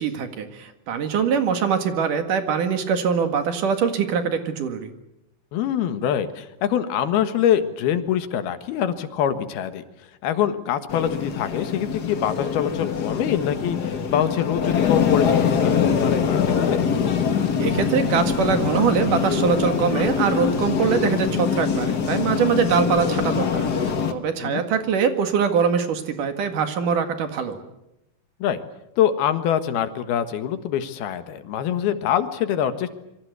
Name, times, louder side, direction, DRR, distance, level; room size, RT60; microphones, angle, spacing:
voice 1, 0.0-4.9 17.6-27.6, right 6 dB, 60° right, 8 dB, 3.3 m, -23 dB
voice 2, 5.5-9.8 10.2-16.9 24.4-24.6 28.4-28.6 29.0-32.9, left 9 dB, 85° left, 10 dB, 3.4 m, -24 dB
sound 1, 10.9-24.1, left 7 dB, 55° left, 1.1 m, -23 dB
27.0 x 24.0 x 8.2 m, 0.86 s
omnidirectional pair, 4.3 m